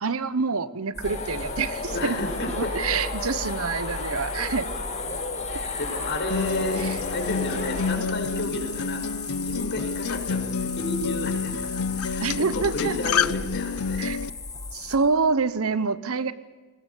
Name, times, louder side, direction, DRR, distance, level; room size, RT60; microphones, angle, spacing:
voice 1, 0.0-2.2 2.6-4.7 6.8-6.9 12.2-12.9 14.0-14.2 14.7-16.3, right 4 dB, 70° right, 15 dB, 1.0 m, -26 dB
sound 1, 0.9-15.0, left 3 dB, 15° left, 1.5 m, -36 dB
sound 2, 1.0-7.9, left 2 dB, 35° left, 7.1 m, -34 dB
voice 2, 1.9-3.0 5.5-9.1 9.4-14.1, left 2 dB, 55° left, 4 dB, 5.7 m, -32 dB
Acoustic guitar, 6.3-14.3, left 6 dB, 80° left, 0.6 m, -29 dB
21.0 x 20.5 x 8.4 m, 1.4 s
head